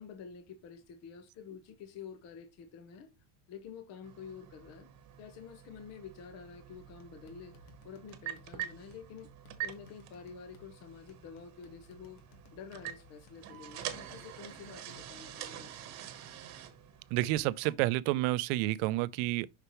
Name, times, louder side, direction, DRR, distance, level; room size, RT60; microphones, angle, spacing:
voice 1, 0.0-3.1 3.5-4.9 5.2-9.3 9.6-12.2 12.5-16.0, left 6 dB, 45° left, 1.0 m, -49 dB
sound 1, 4.0-17.7, right 11 dB, 45° right, 1.1 m, -46 dB
sound 2, 6.7-15.5, left 5 dB, 60° left, 1.6 m, -61 dB
voice 2, 17.1-19.5, right 17 dB, 75° right, 0.6 m, -30 dB
6.6 x 5.9 x 3.0 m
cardioid pair, 170°, 37 cm